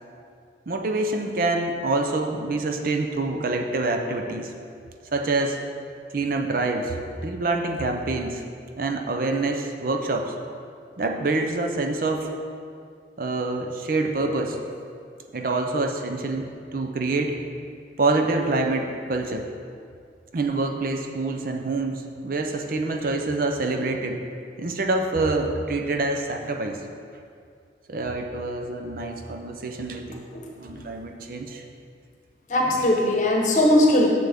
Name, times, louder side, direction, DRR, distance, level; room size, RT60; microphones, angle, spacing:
voice 1, 0.7-4.5 5.1-5.6 6.1-8.4 8.8-10.3 11.0-12.3 13.2-14.6 15.3-17.4 18.0-19.5 20.3-24.2 24.6-26.8 27.9-30.3 30.6-31.6 32.7-32.8, right 2 dB, 50° right, 4 dB, 0.5 m, -26 dB
voice 2, 32.5-34.1, left 1 dB, 45° left, -1 dB, 1.0 m, -19 dB
7.6 x 6.9 x 3.5 m, 2.3 s
head